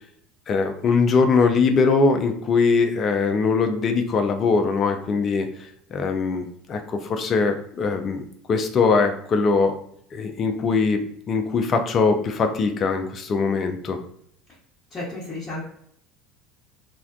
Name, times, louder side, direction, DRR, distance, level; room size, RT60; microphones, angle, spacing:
voice 1, 0.5-5.5 5.9-8.2 8.5-9.7 10.1-14.0, left 4 dB, 40° left, 5 dB, 0.4 m, -21 dB
voice 2, 14.9-15.6, left 2 dB, 25° left, -11 dB, 1.1 m, -32 dB
2.4 x 2.2 x 2.4 m, 0.68 s
figure-of-eight pair, 65°, 0 cm